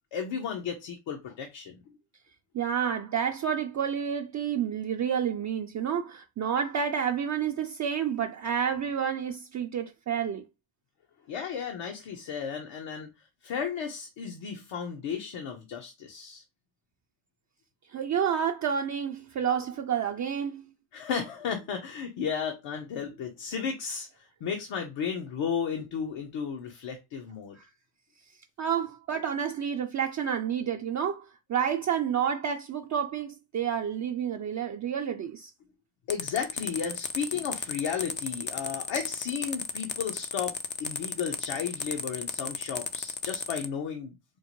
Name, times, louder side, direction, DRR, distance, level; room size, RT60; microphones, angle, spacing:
voice 1, 0.1-1.8 11.3-16.4 20.9-27.6 36.1-40.5 40.8-44.1, left 7 dB, 70° left, 0.9 m, -34 dB
voice 2, 2.5-10.4 17.9-20.7 27.5-27.7 28.6-35.5, right 8 dB, 40° right, 0.4 m, -29 dB
sound 1, 36.1-43.6, left 5 dB, 25° left, 0.3 m, -34 dB
4.4 x 2.1 x 3.0 m
cardioid pair, 85°, 48 cm